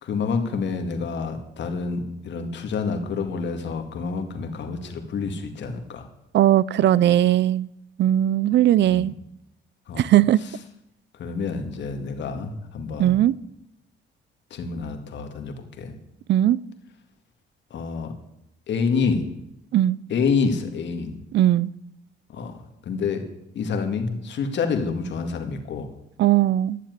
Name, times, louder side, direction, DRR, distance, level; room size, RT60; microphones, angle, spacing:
voice 1, 0.0-6.1 8.9-9.1 9.9-10.0 11.2-13.2 14.5-15.9 17.7-18.1 18.7-19.3 20.1-21.2 22.3-22.6 22.9-23.2 23.5-25.9, left 5 dB, 65° left, 2.1 m, -28 dB
voice 2, 6.3-7.7 8.0-9.1 10.0-10.4 13.0-13.3 16.3-16.6 19.7-20.0 21.3-21.7 26.2-26.8, right 12 dB, 65° right, 0.5 m, -18 dB
12.0 x 7.5 x 9.3 m
cardioid pair, 90°, 20 cm